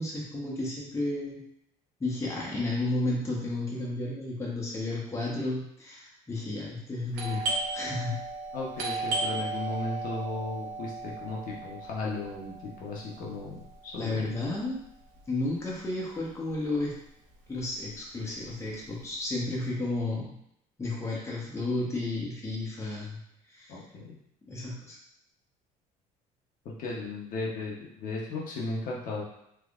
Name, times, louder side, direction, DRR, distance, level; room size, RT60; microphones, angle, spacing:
voice 1, 0.0-1.4 2.0-8.2 14.0-14.8 15.3-16.9 17.5-20.4 20.8-23.2 23.5-23.8 24.5-25.0, left 2 dB, 15° left, -4 dB, 1.0 m, -32 dB
Doorbell, 7.1-16.5 16.8-16.9 17.5-17.8 18.2-19.6, right 3 dB, 75° right, 0.8 m, -36 dB
voice 2, 8.5-14.3 23.7-24.2 26.6-29.2, left 3 dB, 60° left, -4 dB, 0.9 m, -36 dB
3.5 x 3.1 x 2.4 m, 0.75 s
cardioid pair, 110°, 16 cm